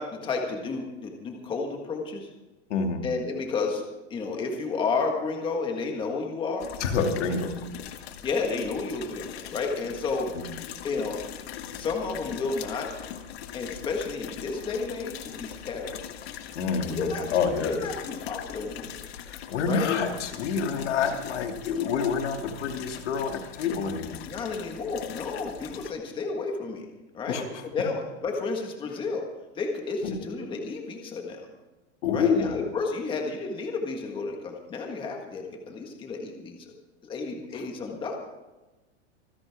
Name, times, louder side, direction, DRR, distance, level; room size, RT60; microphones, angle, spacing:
voice 1, 0.0-2.3 3.0-3.8 4.1-6.7 8.2-10.3 10.8-11.2 11.7-12.9 13.5-16.1 16.9-17.3 17.6-19.0 19.7-19.9 24.3-26.8 27.1-29.3 29.6-31.4 32.1-36.7 37.0-38.3, left 4 dB, 15° left, 2 dB, 1.6 m, -31 dB
voice 2, 2.7-3.0 6.8-7.5 16.5-17.7 19.3-24.2 27.3-27.6 30.0-30.1 32.0-32.6 37.5-37.6, left 5 dB, 80° left, 4 dB, 2.7 m, -27 dB
sound 1, 6.6-25.9, left 10 dB, 60° left, 1.6 m, -41 dB
26.0 x 10.5 x 3.6 m, 1.1 s
supercardioid pair, 170°, 35 cm